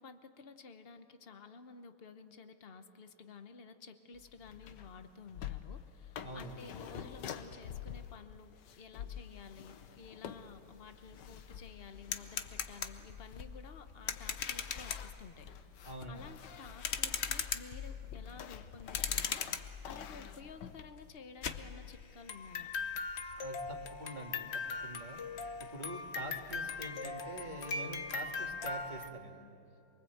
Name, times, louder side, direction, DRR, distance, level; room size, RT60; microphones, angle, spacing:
voice 1, 0.0-15.7 16.1-19.4 19.8-22.7, left 5 dB, 45° left, 9 dB, 0.7 m, -53 dB
sound 1, 4.1-20.9, left 9 dB, 60° left, 1.4 m, -49 dB
voice 2, 6.2-6.7 15.8-16.3 23.4-25.2 25.6-29.5, right 1 dB, 20° right, 1 dB, 1.8 m, -46 dB
sound 2, 10.7-10.8 11.1-29.1, left 5 dB, 85° left, 0.5 m, -40 dB
24.0 x 23.5 x 8.0 m, 2.7 s
omnidirectional pair, 2.4 m